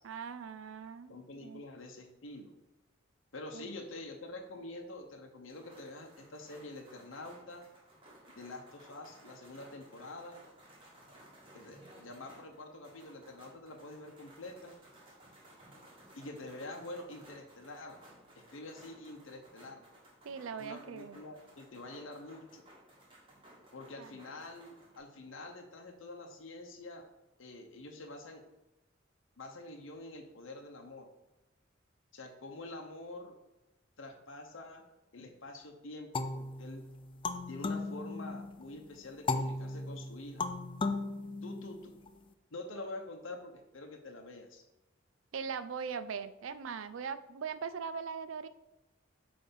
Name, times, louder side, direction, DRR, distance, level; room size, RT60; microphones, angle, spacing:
voice 1, 0.0-1.1 1.4-1.6 3.5-3.7 20.2-21.2 24.0-24.1 45.3-48.5, right 6 dB, 80° right, 13 dB, 0.5 m, -40 dB
voice 2, 1.1-2.5 3.3-7.6 8.4-10.5 11.5-14.7 16.2-18.0 18.3-19.8 20.6-22.6 23.7-27.0 27.4-28.4 29.4-31.1 32.1-33.3 34.0-34.8 35.1-36.8 37.5-40.5 41.4-41.9 42.5-44.6, left 2 dB, 75° left, 2 dB, 0.9 m, -46 dB
sound 1, 5.5-25.0, right 1 dB, 25° right, 1.8 m, -58 dB
sound 2, 36.1-38.6 39.3-42.1, left 3 dB, 25° left, 0.4 m, -36 dB
8.4 x 3.4 x 5.4 m, 0.96 s
head